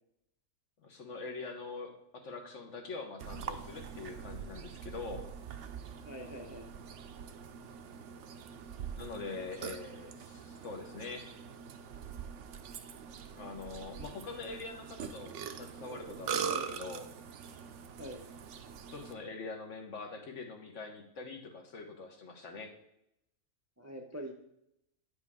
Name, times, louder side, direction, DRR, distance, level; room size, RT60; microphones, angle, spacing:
voice 1, 0.8-5.3 9.0-11.3 13.4-17.1 18.9-22.7, left 3 dB, 75° left, 3 dB, 1.4 m, -44 dB
Burping eructation, 3.2-19.1, right 7 dB, 75° right, 0.9 m, -43 dB
voice 2, 6.0-6.7 16.4-16.8 18.0-18.2 23.8-24.3, equal, 20° right, 3 dB, 0.5 m, -44 dB
9.6 x 5.1 x 3.6 m, 0.81 s
omnidirectional pair, 1.3 m